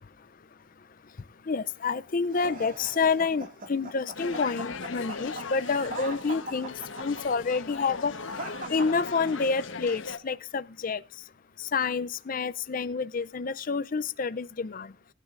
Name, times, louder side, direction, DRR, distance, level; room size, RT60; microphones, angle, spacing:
voice 1, 1.5-8.1 8.7-11.0 11.6-14.9, left 4 dB, 40° left, 0.5 m, -28 dB
sound 1, 2.3-9.7, right 2 dB, 40° right, 2.1 m, -41 dB
sound 2, 4.1-10.2, left 4 dB, 65° left, 1.1 m, -38 dB
19.0 x 10.0 x 2.5 m
head